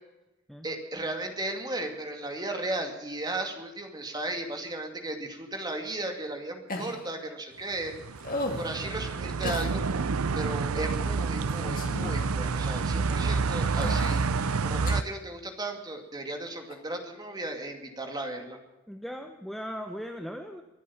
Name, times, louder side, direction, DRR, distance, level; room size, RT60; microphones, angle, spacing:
voice 1, 0.6-7.9 8.6-9.8 10.3-18.6, right 2 dB, 20° right, 4 dB, 2.3 m, -35 dB
sound 1, 6.7-7.1 8.2-8.7 9.4-9.7 10.9-11.1 11.5-12.3 13.0-13.1 13.7-14.3 14.9-15.0 16.7-16.8, left 1 dB, 40° left, 2.3 m, -35 dB
sound 2, 7.8-15.0, right 4 dB, 75° right, 0.6 m, -28 dB
voice 2, 18.9-20.6, equal, ahead, 5 dB, 0.8 m, -38 dB
24.0 x 8.4 x 7.2 m, 1.1 s
head